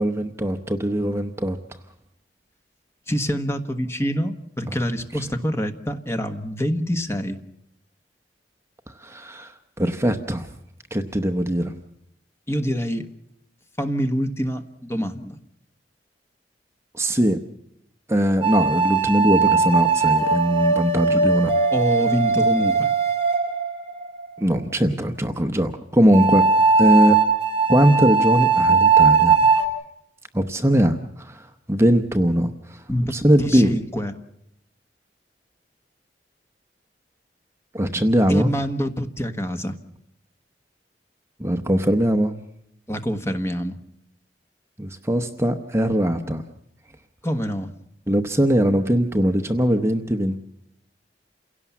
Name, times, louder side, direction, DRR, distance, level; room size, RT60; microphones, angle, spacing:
voice 1, 0.0-1.6 4.7-4.8 5.1-5.2 8.9-10.5 10.9-11.7 16.9-17.4 18.1-21.5 24.4-26.5 26.8-27.2 27.7-29.5 30.3-32.8 33.1-33.8 37.7-38.5 41.4-42.3 44.8-46.4 48.1-50.4, equal, 15° right, 7 dB, 0.8 m, -21 dB
voice 2, 3.1-7.4 12.5-13.1 13.8-15.4 21.7-22.9 32.9-33.1 33.4-34.1 38.3-39.7 42.9-43.8 47.2-47.7, equal, 15° left, 7 dB, 1.3 m, -26 dB
sound 1, 18.4-24.3 26.1-29.7, right 4 dB, 35° right, 3.1 m, -19 dB
28.5 x 17.0 x 7.2 m, 0.81 s
head